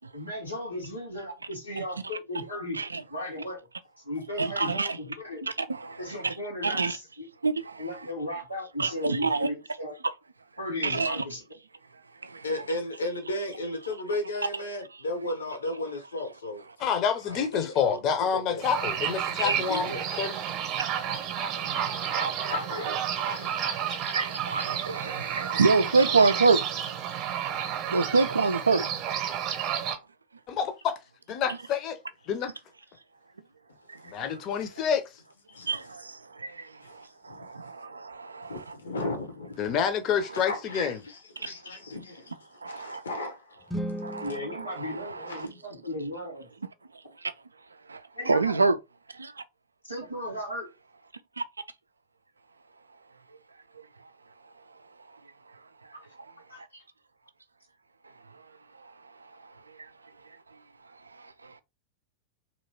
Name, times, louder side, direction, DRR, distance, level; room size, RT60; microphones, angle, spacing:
voice 1, 0.1-2.8 3.1-3.6 4.0-5.5 6.0-7.3 7.8-10.0 10.6-11.4 44.2-46.5 48.1-48.6 49.8-50.7 56.5-56.8, left 1 dB, 90° left, 1.4 m, -36 dB
voice 2, 4.4-5.0 5.5-6.3 6.6-7.0 7.4-7.8 8.8-9.5 10.8-11.2 12.2-12.4 19.5-19.6 20.8-20.9 21.6-22.5 23.4-26.7 27.9-28.9 33.9-34.4 35.7-38.6 41.4-41.5 42.6-43.0 44.0-45.5 47.2-47.3 47.9-48.0 48.3-48.8 49.1-49.4 51.4-51.5 61.4-61.5, right 4 dB, 75° right, 0.3 m, -27 dB
voice 3, 12.4-16.6 17.3-18.6 19.4-20.0 22.4-23.6 35.5-35.7 36.8-37.0 37.3-37.5 38.4-39.7 40.3-42.3 42.6-43.7 44.0-44.2 45.3-45.5, left 1 dB, 70° left, 1.0 m, -35 dB
voice 4, 16.8-20.3 30.5-30.9 31.3-32.0 32.3-32.5 34.1-35.0 39.6-41.0, left 7 dB, 35° left, 0.7 m, -28 dB
sound 1, 18.6-30.0, right 9 dB, 35° right, 0.8 m, -31 dB
sound 2, 43.6-45.8, equal, ahead, 0.4 m, -38 dB
3.0 x 2.9 x 2.8 m
figure-of-eight pair, 90°, 0 cm